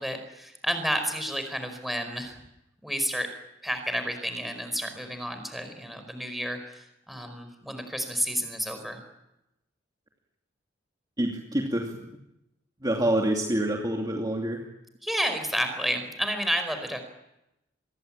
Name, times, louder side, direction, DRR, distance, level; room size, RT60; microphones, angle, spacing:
voice 1, 0.0-2.4 2.8-3.3 3.6-9.0 15.0-17.0, equal, ahead, 7 dB, 5.0 m, -31 dB
voice 2, 11.2-11.9 12.8-14.6, right 1 dB, 20° right, 0 dB, 2.7 m, -26 dB
26.0 x 21.5 x 9.0 m, 0.90 s
head